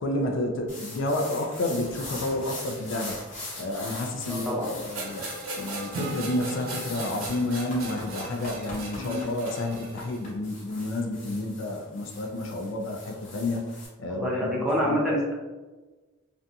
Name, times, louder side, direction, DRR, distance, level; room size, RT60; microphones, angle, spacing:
voice 1, 0.0-3.2 3.6-5.2 5.5-13.7 14.0-15.0, left 2 dB, 60° left, 2 dB, 0.3 m, -30 dB
sound 1, 0.7-13.9, left 2 dB, 35° left, 0.8 m, -42 dB
voice 2, 4.3-4.7 8.9-9.2 14.1-15.3, equal, 5° right, -6 dB, 0.5 m, -27 dB
sound 2, 4.9-10.3, right 2 dB, 90° right, 0.7 m, -38 dB
Acoustic guitar / Strum, 5.9-9.5, right 3 dB, 70° right, 0.3 m, -41 dB
2.5 x 2.2 x 2.6 m, 1.2 s
head